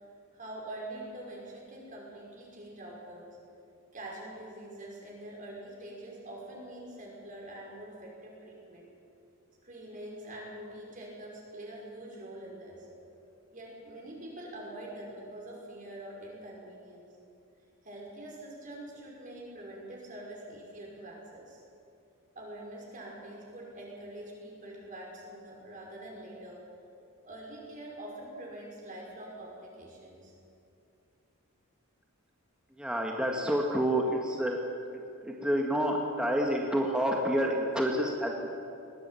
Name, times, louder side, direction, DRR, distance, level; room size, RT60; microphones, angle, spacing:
voice 1, 0.3-3.4 3.9-8.9 9.6-12.9 13.5-17.1 17.8-21.6 22.4-26.7 27.2-30.4, right 1 dB, 35° right, -2 dB, 5.6 m, -45 dB
voice 2, 32.7-34.6 35.2-38.5, equal, 5° right, 0 dB, 1.7 m, -28 dB
21.0 x 17.5 x 9.2 m, 2.6 s
head